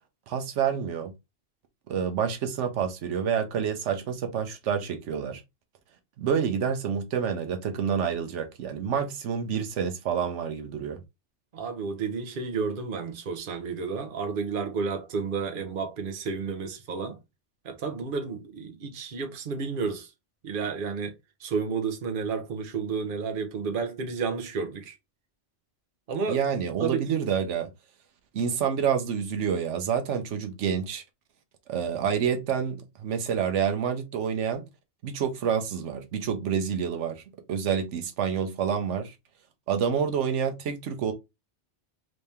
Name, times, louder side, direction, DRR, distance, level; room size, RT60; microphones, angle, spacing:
voice 1, 0.3-1.1 1.9-5.4 6.2-11.0 26.3-27.7 28.3-31.0 31.7-34.6 35.0-37.2 37.5-39.1 39.7-41.1, right 7 dB, 85° right, 1.0 m, -28 dB
voice 2, 11.5-17.2 17.6-20.1 20.4-21.1 21.4-25.0 26.1-26.4 26.8-27.2, right 5 dB, 50° right, 0.9 m, -31 dB
3.2 x 2.8 x 3.3 m
omnidirectional pair, 1.2 m